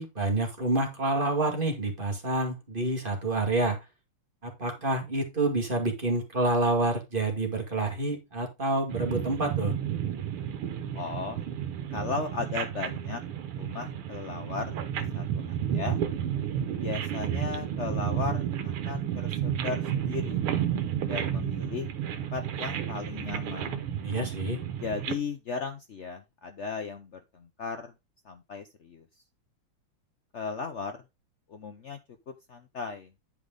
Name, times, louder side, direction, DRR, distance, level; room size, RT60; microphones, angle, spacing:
voice 1, 0.0-3.8 4.4-9.7 24.0-24.6, right 2 dB, 25° right, 2 dB, 2.3 m, -28 dB
sound 1, 8.9-25.1, right 9 dB, 90° right, 2.0 m, -32 dB
voice 2, 10.9-11.4 11.9-13.2 13.6-16.0 16.7-20.5 21.0-23.9 24.8-27.9 28.2-29.0 30.3-31.0 31.5-32.0 32.5-33.1, left 5 dB, 80° left, 7 dB, 0.6 m, -36 dB
10.5 x 5.0 x 3.8 m, 0.22 s
omnidirectional pair, 2.3 m